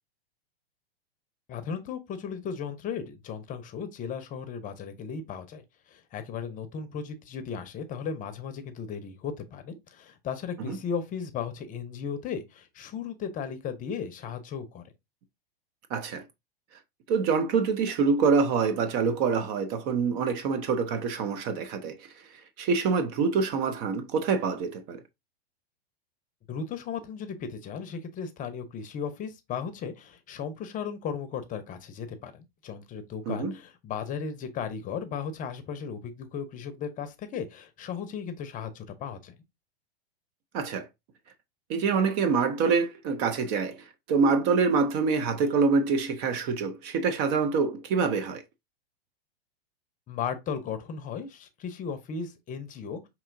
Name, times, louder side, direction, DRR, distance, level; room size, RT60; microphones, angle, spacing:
voice 1, 1.5-14.8 26.5-39.3 50.1-53.1, left 6 dB, 25° left, 0.7 m, -36 dB
voice 2, 15.9-16.2 17.1-25.0 33.3-33.5 40.5-40.9 41.7-48.4, right 5 dB, 40° right, 0.6 m, -26 dB
5.4 x 2.9 x 2.5 m
hypercardioid pair, 110°, 30 cm